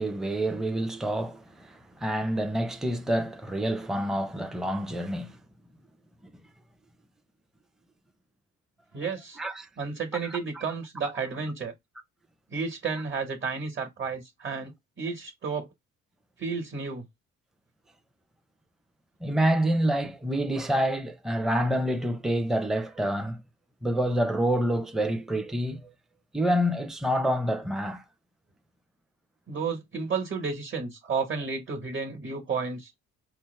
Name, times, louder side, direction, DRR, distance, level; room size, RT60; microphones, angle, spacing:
voice 1, 0.0-5.4 6.2-6.3 9.4-9.7 10.2-10.6 19.2-23.4 23.8-25.9 26.3-28.0, right 1 dB, ahead, 0.5 m, -27 dB
voice 2, 8.9-9.4 9.8-11.7 12.5-14.7 15.0-15.7 16.4-17.0 29.5-32.9, right 5 dB, 40° right, 1.2 m, -32 dB
4.4 x 2.1 x 3.1 m
cardioid pair, 90°, 30 cm